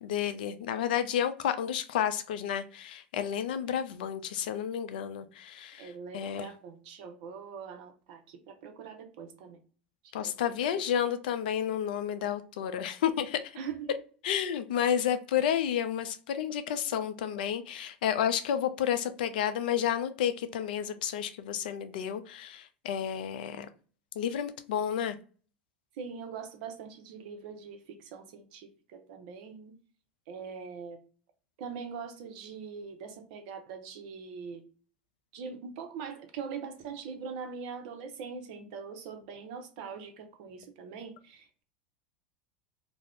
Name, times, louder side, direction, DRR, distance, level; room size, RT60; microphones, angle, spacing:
voice 1, 0.0-6.5 10.1-13.6 14.2-23.7 24.2-25.2, left 9 dB, 70° left, 0.4 m, -31 dB
voice 2, 5.8-9.6 10.0-10.3 10.7-10.8 13.6-13.9 14.8-14.9 26.0-29.7 30.3-31.0 31.6-34.6 35.3-41.6, right 6 dB, 60° right, 0.6 m, -42 dB
2.4 x 2.0 x 3.4 m
hypercardioid pair, 80°, 5 cm